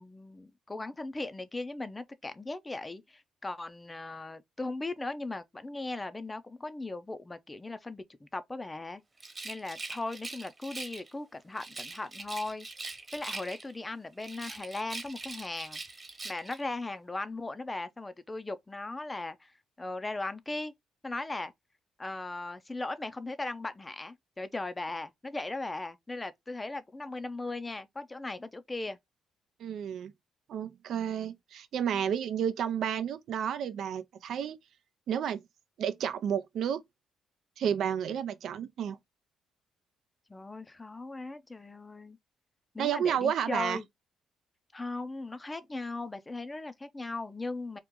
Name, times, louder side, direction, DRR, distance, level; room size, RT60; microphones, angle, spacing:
voice 1, 0.0-9.0 9.4-12.7 13.1-15.8 16.2-19.5 19.8-20.7 21.0-21.5 22.0-29.0 40.3-42.2 42.7-43.8 44.7-47.8, left 2 dB, 20° left, 0.5 m, -38 dB
Rattle, 9.2-11.1 11.6-13.8 14.2-16.6, right 3 dB, 25° right, 1.1 m, -42 dB
voice 2, 29.6-30.1 30.5-34.6 35.1-35.4 35.8-36.8 37.6-39.0 42.8-43.8, right 8 dB, 70° right, 0.5 m, -31 dB
3.0 x 2.4 x 3.6 m
cardioid pair, 90°, 0 cm